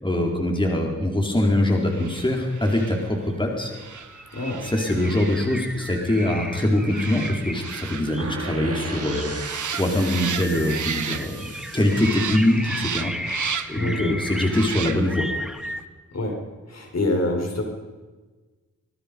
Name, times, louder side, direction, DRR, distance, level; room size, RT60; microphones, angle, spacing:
voice 1, 0.0-3.7 4.6-13.1 13.7-15.4, left 1 dB, 15° left, 0 dB, 4.3 m, -23 dB
sound 1, 1.8-11.6 11.9-13.9 14.4-15.3 15.6-15.8, right 7 dB, 80° right, 1.3 m, -35 dB
sound 2, 3.3-3.4 3.7-15.8, equal, ahead, 1.9 m, -36 dB
voice 2, 4.3-4.7 13.7-14.2 16.1-16.4 16.7-17.6, left 2 dB, 60° left, 1 dB, 5.7 m, -26 dB
sound 3, 8.2-14.0, right 4 dB, 50° right, 2.3 m, -38 dB
25.0 x 21.0 x 5.4 m, 1.3 s
wide cardioid pair, 75°, 30 cm